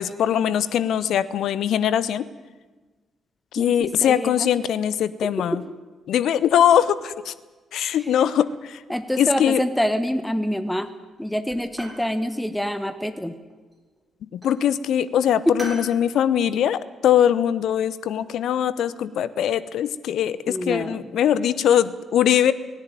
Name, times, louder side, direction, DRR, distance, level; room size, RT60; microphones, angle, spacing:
voice 1, 0.0-2.3 3.5-5.6 6.1-7.3 7.7-8.8 9.2-9.6 14.3-22.5, left 9 dB, 60° left, 18 dB, 0.7 m, -21 dB
voice 2, 3.6-4.5 5.2-5.6 8.0-8.1 8.9-10.9 11.2-13.3 15.5-15.7 20.5-21.0, equal, 5° left, 12 dB, 1.4 m, -26 dB
sound 1, 7.9-8.6 9.0-9.6 10.4-10.9 11.2-12.1 13.5-14.0 14.4-14.6 15.6-15.9, right 1 dB, 15° right, 7.1 m, -42 dB
18.0 x 17.5 x 9.4 m, 1.3 s
figure-of-eight pair, 40°, 0 cm